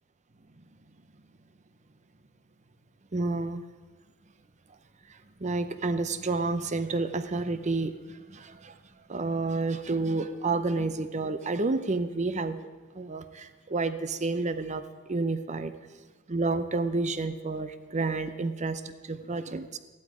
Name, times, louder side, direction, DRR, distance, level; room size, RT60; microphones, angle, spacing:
voice 1, 3.1-3.6 5.4-8.8 9.1-12.6 12.9-14.8 15.1-15.7 16.3-19.8, right 3 dB, 35° right, 11 dB, 0.7 m, -30 dB
14.5 x 12.0 x 5.0 m, 1.3 s
head